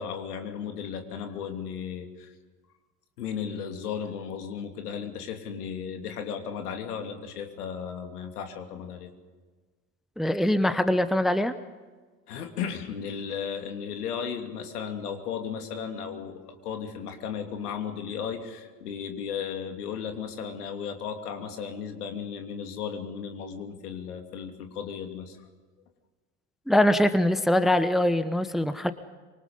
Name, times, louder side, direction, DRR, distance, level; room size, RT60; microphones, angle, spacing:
voice 1, 0.0-2.3 3.2-9.1 12.3-25.5, left 7 dB, 70° left, 5 dB, 3.0 m, -35 dB
voice 2, 10.2-11.5 26.7-28.9, left 1 dB, ahead, 13 dB, 0.9 m, -23 dB
25.5 x 24.0 x 5.5 m, 1.4 s
figure-of-eight pair, 70°, 48 cm